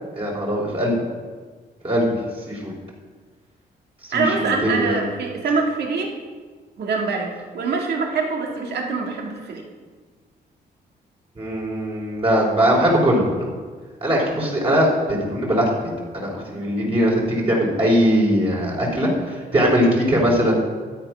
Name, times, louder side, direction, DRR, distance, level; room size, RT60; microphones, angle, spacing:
voice 1, 0.2-1.0 1.8-2.2 2.5-2.7 4.1-5.0 11.4-13.5 14.0-20.5, equal, 35° right, -4 dB, 3.6 m, -20 dB
voice 2, 4.1-6.1 6.8-9.6, right 4 dB, 75° right, 1 dB, 2.1 m, -24 dB
12.0 x 8.9 x 5.6 m, 1.5 s
cardioid pair, 100°, 17 cm